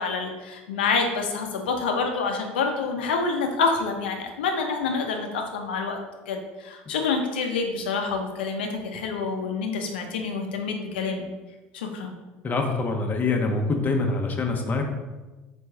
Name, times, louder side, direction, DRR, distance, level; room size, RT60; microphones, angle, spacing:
voice 1, 0.0-11.3 11.7-12.1, left 4 dB, 90° left, 3 dB, 0.6 m, -27 dB
voice 2, 12.4-14.8, left 3 dB, 30° left, 2 dB, 0.8 m, -25 dB
4.2 x 3.2 x 3.4 m, 1.2 s
hypercardioid pair, 80°, 5 cm